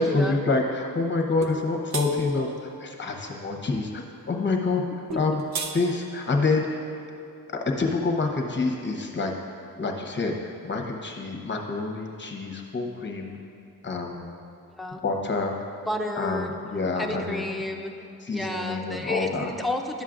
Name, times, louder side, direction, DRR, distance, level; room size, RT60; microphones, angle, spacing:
voice 1, 0.0-4.9 5.1-5.4 5.7-6.8 7.8-9.3 9.8-10.3 10.6-13.4 13.8-14.3 14.9-15.5 16.2-17.6 18.2-19.5, left 3 dB, 30° left, 2 dB, 0.9 m, -27 dB
sound 1, 1.4-1.6 1.9-2.1 5.1-5.8, right 6 dB, 90° right, 0.7 m, -32 dB
voice 2, 15.9-16.5 17.0-17.9 18.3-20.0, left 1 dB, ahead, 2 dB, 0.5 m, -31 dB
11.5 x 7.3 x 2.5 m, 2.6 s
wide cardioid pair, 115°, 36 cm